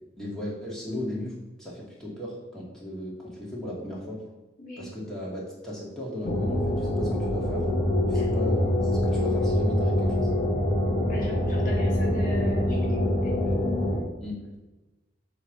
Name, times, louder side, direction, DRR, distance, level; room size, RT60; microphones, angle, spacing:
voice 1, 0.2-4.2 4.8-7.6 8.1-10.3 14.2-14.4, left 1 dB, 5° left, -6 dB, 2.1 m, -36 dB
sound 1, 6.2-14.0, left 1 dB, 30° left, 1.1 m, -25 dB
voice 2, 11.1-13.4, left 1 dB, 45° left, -1 dB, 2.2 m, -39 dB
9.1 x 3.3 x 6.5 m, 1.1 s
head